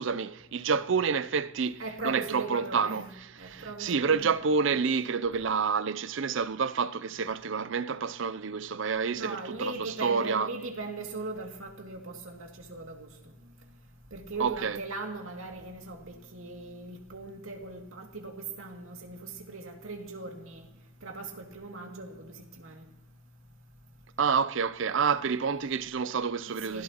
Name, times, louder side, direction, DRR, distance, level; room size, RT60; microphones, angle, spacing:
voice 1, 0.0-3.1 3.4-10.5 14.4-14.8 24.2-26.8, right 5 dB, 60° right, 0.5 m, -28 dB
voice 2, 1.8-3.1 3.4-4.3 9.2-13.1 14.1-20.7 21.0-22.8 26.7-26.8, right 3 dB, 80° right, 2.4 m, -39 dB
28.5 x 16.5 x 3.0 m
head